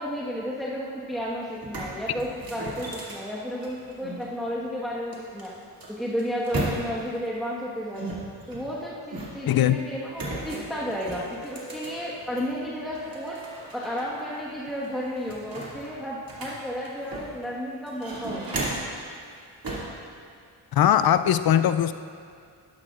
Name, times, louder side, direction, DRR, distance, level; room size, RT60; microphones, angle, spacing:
voice 1, 0.0-5.5 5.9-8.2 8.5-13.4 13.7-18.6, equal, ahead, -6 dB, 1.4 m, -32 dB
sound 1, 1.1-1.2 1.5-4.2 5.1-7.2 7.9-9.6 10.1-12.5 12.9-14.0 14.3-14.4 14.8-17.5 17.9-19.0 19.6-20.0, right 2 dB, 45° right, 2.5 m, -35 dB
sound 2, 9.5-14.7, equal, 85° left, 1.7 m, -45 dB
voice 2, 9.5-9.8 20.7-21.9, left 10 dB, 50° left, 12 dB, 0.5 m, -20 dB
11.5 x 11.5 x 2.5 m, 2.2 s
supercardioid pair, 45°, 49 cm